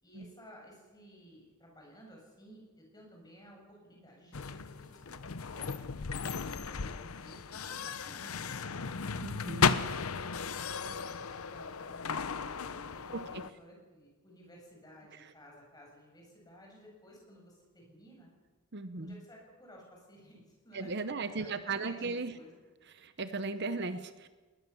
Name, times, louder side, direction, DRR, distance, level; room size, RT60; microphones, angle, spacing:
voice 1, 0.0-5.9 6.2-8.7 10.2-18.3 19.0-22.5, equal, 20° left, -1 dB, 7.4 m, -55 dB
sound 1, 4.3-13.5, left 5 dB, 80° left, 0.8 m, -35 dB
voice 2, 9.2-9.8 13.1-13.4 15.1-15.3 18.7-19.2 20.7-22.3 22.9-24.3, right 3 dB, 50° right, 11 dB, 0.9 m, -37 dB
20.5 x 20.0 x 7.1 m, 1.3 s
head